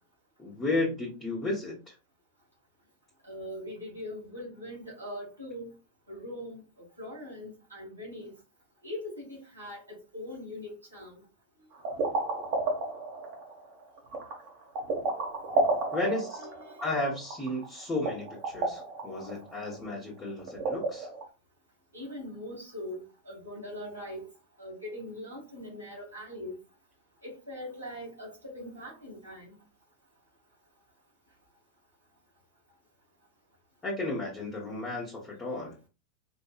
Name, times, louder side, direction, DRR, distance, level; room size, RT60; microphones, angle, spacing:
voice 1, 0.4-2.0 15.9-16.4 16.8-21.1 33.8-35.8, left 2 dB, 15° left, 1.2 m, -33 dB
voice 2, 3.2-5.7 6.1-6.6 7.0-8.3 8.8-11.2 16.1-16.9 21.9-24.3 24.6-26.6 27.2-29.5, left 1 dB, 85° right, 2.0 m, -41 dB
Dripping water, 11.7-21.2, right 2 dB, 45° right, 1.2 m, -32 dB
4.6 x 2.6 x 2.4 m
figure-of-eight pair, 90°, 0 cm